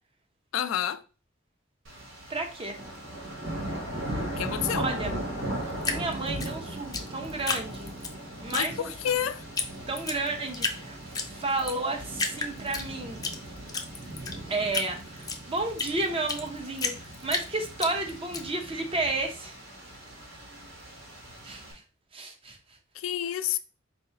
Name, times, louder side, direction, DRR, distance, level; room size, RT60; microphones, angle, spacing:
voice 1, 0.5-1.0 4.4-4.9 8.5-9.5 22.9-23.6, left 10 dB, 90° left, 0.4 m, -29 dB
sound 1, 1.8-21.7, right 1 dB, 80° right, 1.4 m, -38 dB
voice 2, 2.3-2.8 4.7-5.1 5.8-7.9 8.4-8.9 9.9-13.2 14.5-19.6 21.4-21.8 22.1-22.8, right 2 dB, 30° right, 0.7 m, -32 dB
Drip, 5.8-8.1 8.5-9.2 9.6-9.7 10.0-10.8 11.1-11.8 12.1-13.4 13.7-16.5 16.8-18.4, left 4 dB, 20° left, 0.5 m, -31 dB
4.6 x 3.1 x 2.9 m
head